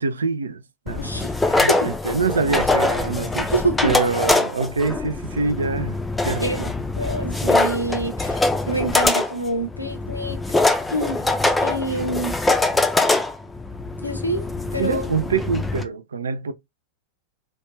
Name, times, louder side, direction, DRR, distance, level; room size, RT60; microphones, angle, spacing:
voice 1, 0.0-1.1 1.4-3.5 3.8-6.7 14.8-16.5, right 4 dB, 70° right, 0.3 m, -25 dB
sound 1, 0.9-15.8, left 2 dB, 10° left, 0.4 m, -23 dB
voice 2, 1.0-1.3 1.7-1.8 3.5-3.9 6.4-6.6 7.0-10.4 10.9-11.2 11.6-12.3 14.0-14.5 14.7-15.0, right 1 dB, 85° left, 0.6 m, -26 dB
2.5 x 2.2 x 3.1 m
figure-of-eight pair, 90°, 0 cm